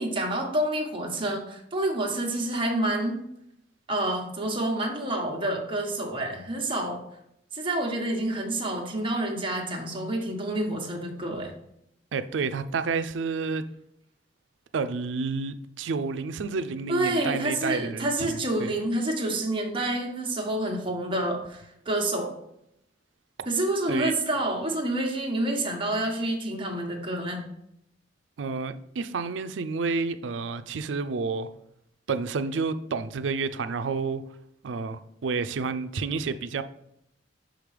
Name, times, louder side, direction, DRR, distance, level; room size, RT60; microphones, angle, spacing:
voice 1, 0.0-3.2 3.9-7.0 7.5-11.5 16.9-22.4 23.5-27.4, right 1 dB, 30° right, 1.2 m, -28 dB
voice 2, 12.1-13.6 14.7-18.7 23.9-24.1 28.4-31.5 32.1-34.2 34.6-36.6, right 4 dB, 85° right, 0.4 m, -30 dB
6.0 x 5.0 x 3.3 m
head